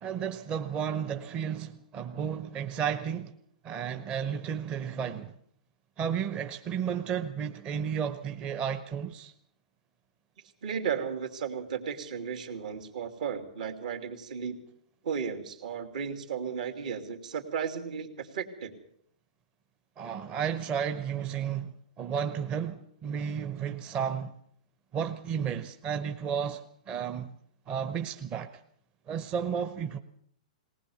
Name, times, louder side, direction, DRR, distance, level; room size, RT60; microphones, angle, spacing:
voice 1, 0.0-3.3 3.6-5.3 6.0-9.3 20.0-24.3 24.9-27.4 27.7-28.6 29.1-30.0, right 7 dB, 25° right, 0.8 m, -33 dB
voice 2, 10.6-14.6 15.0-18.7, right 7 dB, 70° right, 3.0 m, -34 dB
19.5 x 19.0 x 7.2 m
hypercardioid pair, 145°, 4 cm